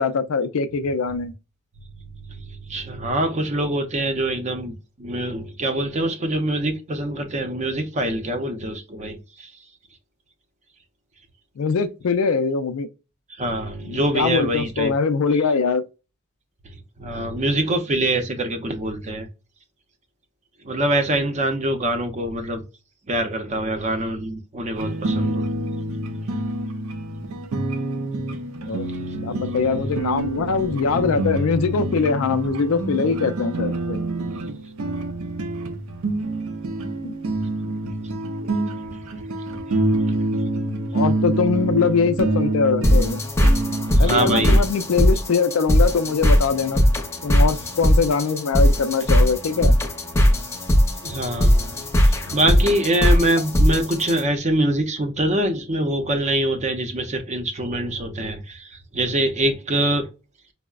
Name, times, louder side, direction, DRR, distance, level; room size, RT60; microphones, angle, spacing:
voice 1, 0.0-1.3 11.6-12.9 13.8-15.8 28.7-28.9 29.2-34.0 37.0-37.1 40.9-43.2 44.0-46.8 47.2-49.7, left 5 dB, 75° left, 0.4 m, -22 dB
voice 2, 2.0-9.5 13.4-14.9 17.0-19.3 20.6-22.6 23.1-25.4 44.0-44.6 51.0-60.1, right 1 dB, 35° right, 0.6 m, -24 dB
sound 1, 24.7-44.6, right 2 dB, 80° right, 0.5 m, -26 dB
sound 2, 42.8-54.2, equal, 15° left, 0.6 m, -19 dB
5.3 x 2.0 x 2.3 m
head